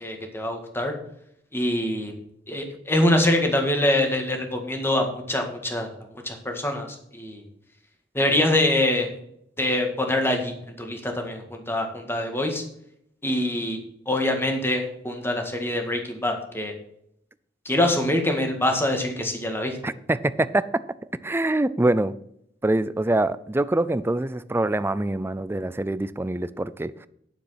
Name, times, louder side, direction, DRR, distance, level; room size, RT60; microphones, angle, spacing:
voice 1, 0.0-0.9 1.5-2.1 2.5-5.9 6.2-6.9 7.1-7.4 8.1-9.1 9.6-12.6 13.2-13.8 14.1-16.7 17.7-19.8, left 1 dB, 15° left, 1.8 m, -24 dB
voice 2, 19.8-20.6 21.2-22.2 22.6-27.1, right 2 dB, 15° right, 0.4 m, -24 dB
9.6 x 7.2 x 5.7 m
head